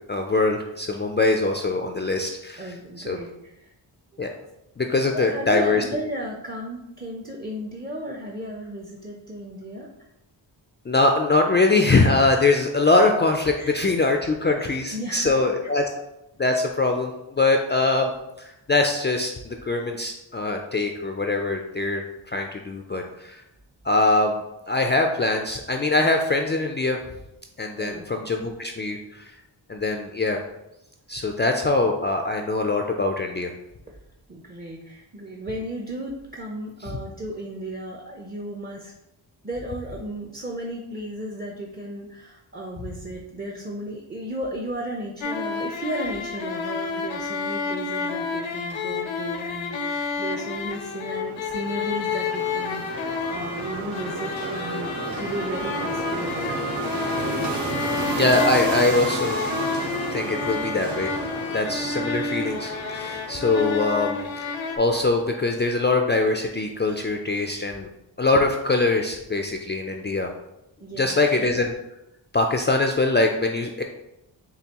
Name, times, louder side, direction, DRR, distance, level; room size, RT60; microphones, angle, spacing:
voice 1, 0.1-2.7 3.1-3.2 4.2-4.3 4.8-5.8 10.9-15.8 16.4-18.1 18.4-23.4 23.9-27.0 27.6-29.0 29.7-30.4 31.1-33.5 58.2-59.4 60.1-61.1 61.5-67.9 68.2-70.3 71.0-71.7 72.3-73.8, left 3 dB, 25° left, 3 dB, 0.3 m, -23 dB
voice 2, 2.6-3.7 4.1-4.2 5.1-9.9 13.6-13.7 14.6-15.7 27.8-28.1 33.9-34.0 34.3-38.9 39.4-57.1 70.8-71.5, right 1 dB, 20° right, -1 dB, 0.6 m, -35 dB
sound 1, 45.2-64.8, left 4 dB, 75° left, 0.6 m, -30 dB
sound 2, 50.5-64.9, right 2 dB, 60° right, 1.2 m, -32 dB
6.8 x 2.3 x 2.9 m, 0.88 s
cardioid pair, 70°, 47 cm